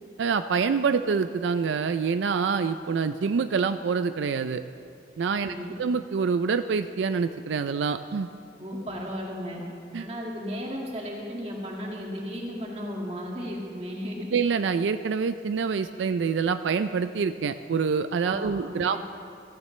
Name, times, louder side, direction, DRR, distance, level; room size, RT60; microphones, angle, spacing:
voice 1, 0.2-4.6 5.2-8.3 9.9-10.0 14.3-19.0, right 5 dB, 90° right, 11 dB, 0.4 m, -26 dB
voice 2, 5.3-5.7 8.6-9.6 10.0-14.3 18.2-19.0, equal, 35° right, -2 dB, 2.0 m, -35 dB
16.0 x 15.0 x 3.2 m, 2.5 s
head